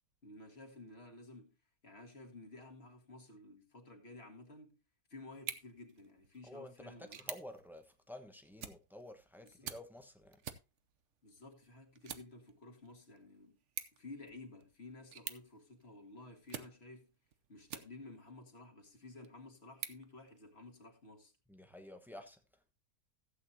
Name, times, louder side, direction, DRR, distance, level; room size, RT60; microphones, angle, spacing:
voice 1, 0.2-1.6 1.8-4.8 5.1-7.3 9.4-9.7 11.2-13.6 13.9-17.1 17.5-21.3, left 2 dB, 45° left, 2.0 m, -53 dB
sound 1, 5.3-18.3 18.8-20.9, right 8 dB, 55° right, 1.1 m, -51 dB
voice 2, 6.5-10.4 21.5-22.4, left 1 dB, ahead, 1.0 m, -51 dB
15.5 x 8.2 x 2.8 m
omnidirectional pair, 1.6 m